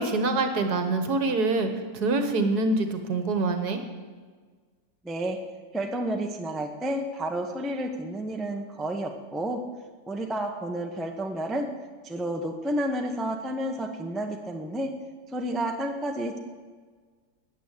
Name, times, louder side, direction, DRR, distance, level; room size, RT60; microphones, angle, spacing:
voice 1, 0.0-3.8, right 3 dB, 60° right, 7 dB, 1.8 m, -25 dB
voice 2, 5.0-5.4 5.7-9.6 10.1-11.7 12.0-14.9 15.3-16.4, right 1 dB, ahead, 3 dB, 0.8 m, -30 dB
14.0 x 9.3 x 8.1 m, 1.5 s
omnidirectional pair, 2.0 m